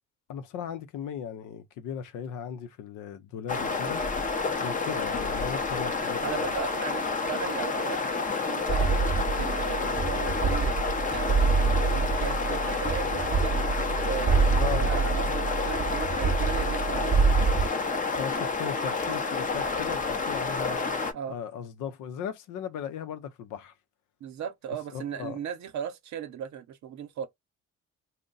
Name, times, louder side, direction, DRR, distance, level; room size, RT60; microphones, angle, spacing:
voice 1, 0.3-4.1 4.6-6.5 14.6-14.9 18.2-20.8 21.3-23.7 24.9-25.4, left 8 dB, 90° left, 0.6 m, -37 dB
sound 1, 3.5-21.1, left 4 dB, 25° left, 0.6 m, -29 dB
voice 2, 6.2-9.0 9.4-10.8 11.1-13.6 14.0-17.6 21.1-21.4 24.2-27.3, right 8 dB, 65° right, 0.8 m, -37 dB
sound 2, 8.7-17.7, right 4 dB, 25° right, 0.8 m, -26 dB
2.6 x 2.1 x 3.8 m
cardioid pair, 90°, 30 cm